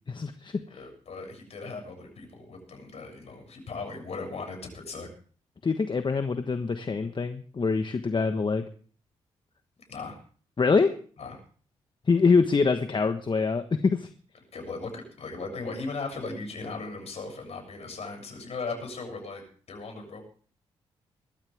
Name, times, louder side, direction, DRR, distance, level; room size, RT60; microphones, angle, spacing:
voice 1, 0.1-0.6 5.6-8.6 10.6-10.9 12.1-14.1, left 4 dB, 40° left, 8 dB, 1.4 m, -24 dB
voice 2, 0.7-5.1 9.9-10.2 11.2-11.4 14.5-19.4 19.7-20.2, left 3 dB, 60° left, 4 dB, 7.6 m, -37 dB
21.0 x 14.0 x 3.6 m, 0.43 s
supercardioid pair, 45°, 12 cm